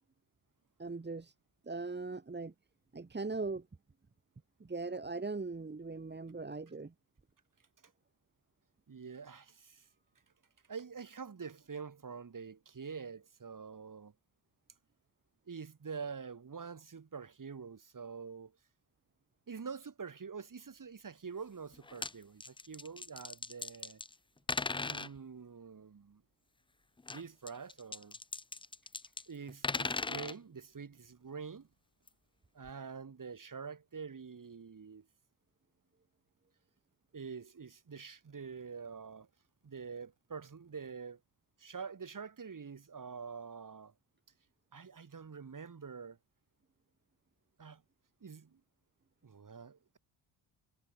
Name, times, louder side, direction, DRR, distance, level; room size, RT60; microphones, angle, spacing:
voice 1, 0.8-1.3 1.6-2.5 2.9-3.7 4.6-6.9, right 3 dB, 20° right, 1.8 m, -39 dB
voice 2, 8.9-9.9 10.7-14.1 15.5-18.6 19.5-24.0 24.8-26.2 27.1-28.2 29.3-31.7 32.5-35.1 37.1-39.3 39.6-41.2 41.6-43.9 44.7-46.2 47.6-47.8 48.2-48.6 49.2-50.0, right 5 dB, 40° right, 4.2 m, -46 dB
sound 1, 21.7-22.1 22.4-24.1 24.5-25.1 27.0-29.2 29.5-30.3 32.1-32.2 32.6-32.7, left 3 dB, 10° left, 0.5 m, -38 dB
supercardioid pair, 65°, 49 cm